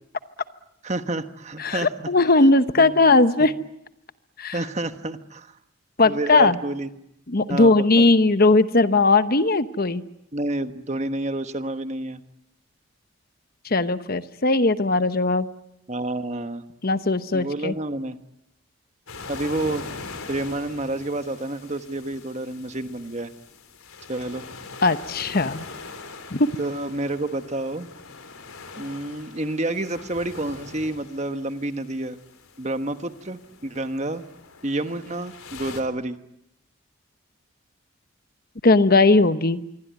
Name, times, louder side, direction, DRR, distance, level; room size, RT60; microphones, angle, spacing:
voice 1, 0.8-2.1 2.8-3.0 4.5-5.5 6.0-6.9 7.5-8.1 10.3-12.2 15.9-16.6 17.3-18.2 19.3-19.9 20.3-23.3 24.1-24.4 26.6-27.9 28.8-32.2 32.6-34.2 34.6-36.2, right 2 dB, 35° right, 9 dB, 1.2 m, -29 dB
voice 2, 1.6-3.5 4.4-4.6 6.0-6.6 7.3-10.0 13.6-15.5 16.8-17.7 24.8-25.6 26.3-26.5 38.6-39.6, left 3 dB, 45° left, 12 dB, 1.0 m, -18 dB
sound 1, 19.1-35.8, left 4 dB, 90° left, 3.8 m, -42 dB
26.5 x 23.5 x 9.4 m, 0.79 s
head